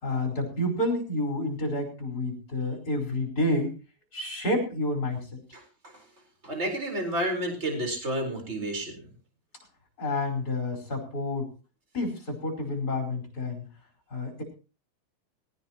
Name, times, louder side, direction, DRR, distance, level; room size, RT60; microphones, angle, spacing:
voice 1, 0.0-3.7 4.1-5.4 10.0-11.5 11.9-13.6 14.1-14.4, left 1 dB, 25° left, 0 dB, 5.1 m, -29 dB
voice 2, 5.5-6.0 6.4-9.0, right 1 dB, 20° right, 3 dB, 4.4 m, -31 dB
19.0 x 18.0 x 3.0 m, 0.34 s
omnidirectional pair, 4.0 m